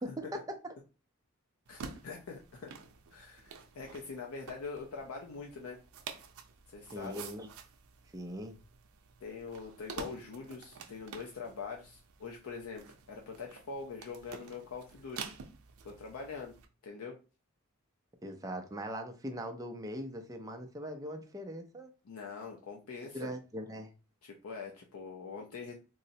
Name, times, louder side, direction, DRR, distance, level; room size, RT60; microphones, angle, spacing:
voice 1, 0.0-0.7 6.9-7.5 8.1-8.6 18.2-21.9 23.1-23.9, equal, 15° right, 5 dB, 0.4 m, -40 dB
voice 2, 1.7-2.7 3.1-5.8 6.7-7.2 9.2-15.3 15.8-16.5 16.8-17.2 22.0-23.3 24.2-25.7, left 4 dB, 85° left, 0 dB, 0.5 m, -43 dB
sound 1, 1.7-16.7, right 5 dB, 85° right, 0.5 m, -49 dB
3.7 x 2.0 x 2.6 m, 0.33 s
head